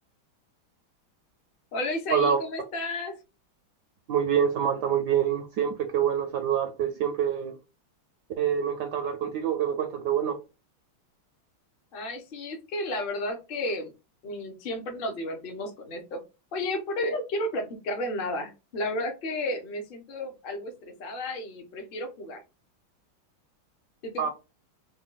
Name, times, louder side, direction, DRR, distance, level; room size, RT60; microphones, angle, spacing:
voice 1, 1.7-3.2 11.9-13.9 14.2-16.2 16.5-22.4 24.0-24.3, left 1 dB, 60° left, 0.5 m, -32 dB
voice 2, 4.1-7.5 8.4-10.4 24.2-24.3, right 8 dB, 75° right, 1.0 m, -26 dB
3.9 x 2.2 x 3.8 m
omnidirectional pair, 2.3 m